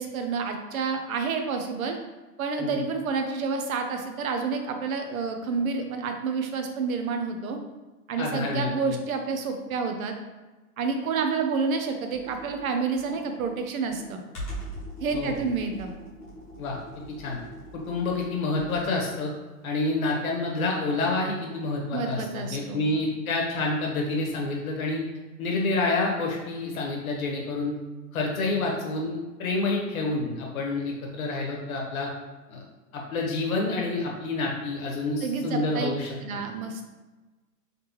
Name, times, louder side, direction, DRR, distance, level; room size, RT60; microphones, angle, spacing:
voice 1, 0.0-2.0 2.4-7.6 8.1-10.1 10.8-14.2 15.0-15.9 21.9-22.9 35.2-35.9 36.2-36.9, right 5 dB, 55° right, 5 dB, 0.7 m, -29 dB
voice 2, 8.2-8.9 15.1-15.4 16.6-16.8 17.2-17.4 17.7-19.3 19.6-25.0 25.4-27.7 28.1-32.1 32.5-32.6 32.9-36.1, left 2 dB, 55° left, -1 dB, 1.3 m, -28 dB
Computer keyboard, 12.1-19.0, right 1 dB, 15° left, 1.0 m, -41 dB
4.1 x 3.2 x 3.0 m, 1.2 s
hypercardioid pair, 155°, 49 cm